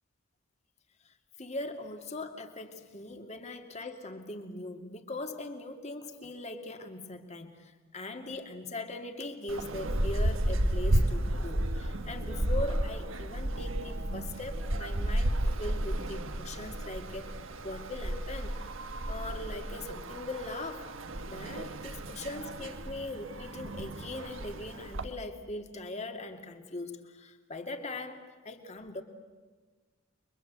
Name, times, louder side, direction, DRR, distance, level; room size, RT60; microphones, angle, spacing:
voice 1, 1.0-17.3 17.6-18.7 19.1-20.9 21.3-29.0, left 2 dB, 35° left, 5 dB, 2.4 m, -40 dB
sound 1, 9.5-25.0, right 1 dB, 70° right, 1.5 m, -33 dB
29.5 x 23.5 x 8.2 m, 1.4 s
head